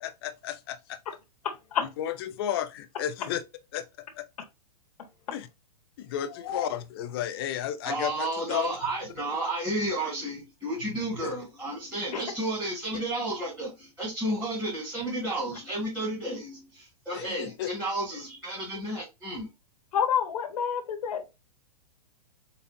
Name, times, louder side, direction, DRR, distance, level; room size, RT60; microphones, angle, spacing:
voice 1, 0.0-1.0 2.0-3.4 3.7-4.2 5.3-5.5 6.0-8.8 11.2-11.3 17.1-17.7, left 11 dB, 35° left, 0.5 m, -33 dB
voice 2, 1.4-1.9 6.4-6.6 19.9-21.3, left 8 dB, 65° left, 1.4 m, -28 dB
voice 3, 7.8-19.5, right 1 dB, 5° right, 2.1 m, -32 dB
4.2 x 4.1 x 2.6 m
hypercardioid pair, 165°, 20 cm